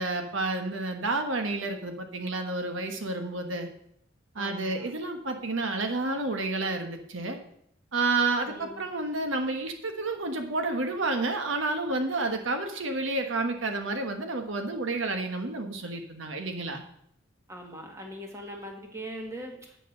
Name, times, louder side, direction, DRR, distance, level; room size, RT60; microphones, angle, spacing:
voice 1, 0.0-3.7 4.3-7.4 7.9-16.8, right 3 dB, 80° right, 5 dB, 1.2 m, -30 dB
voice 2, 4.4-4.9 8.5-8.9 17.5-19.8, equal, 15° right, 1 dB, 1.8 m, -41 dB
9.0 x 6.9 x 6.6 m, 0.71 s
head